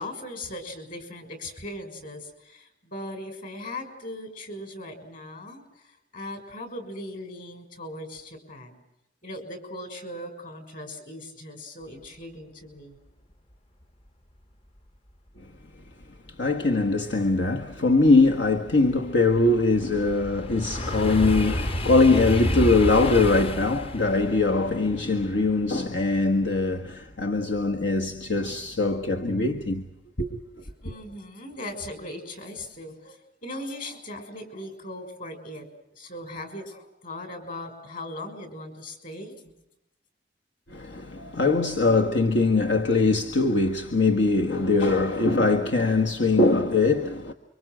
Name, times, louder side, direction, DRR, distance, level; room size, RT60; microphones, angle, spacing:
voice 1, 0.0-8.8 9.2-13.0 30.8-35.7 35.9-39.3, left 1 dB, 50° left, 6.4 m, -39 dB
voice 2, 16.4-29.9 30.2-30.4 40.7-47.3, left 3 dB, 75° left, 1.6 m, -22 dB
sound 1, 17.7-26.8 27.2-27.6, left 1 dB, 30° left, 1.0 m, -31 dB
29.5 x 25.0 x 6.3 m
head